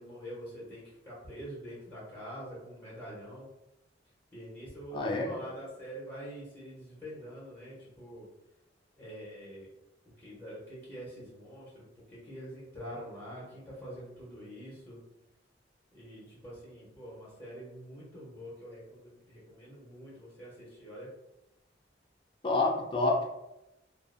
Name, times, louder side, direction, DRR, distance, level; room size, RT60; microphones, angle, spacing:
voice 1, 0.0-3.5 4.3-8.3 9.0-9.7 10.2-15.0 15.9-21.1, equal, 10° left, -9 dB, 0.8 m, -45 dB
voice 2, 4.9-5.4 22.4-23.2, left 2 dB, 25° left, -2 dB, 0.4 m, -28 dB
2.5 x 2.0 x 2.5 m, 0.90 s
head